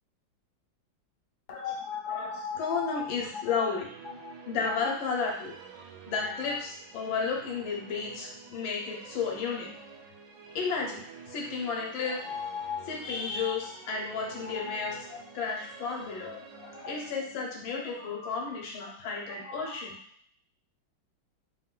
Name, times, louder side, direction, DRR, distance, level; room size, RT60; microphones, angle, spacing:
voice 1, 1.5-4.0 4.2-9.7 10.5-20.0, left 5 dB, 85° left, -1 dB, 1.7 m, -33 dB
Musical instrument, 3.4-18.8, right 6 dB, 75° right, 1.3 m, -50 dB
3.8 x 2.5 x 3.7 m, 0.63 s
omnidirectional pair, 2.1 m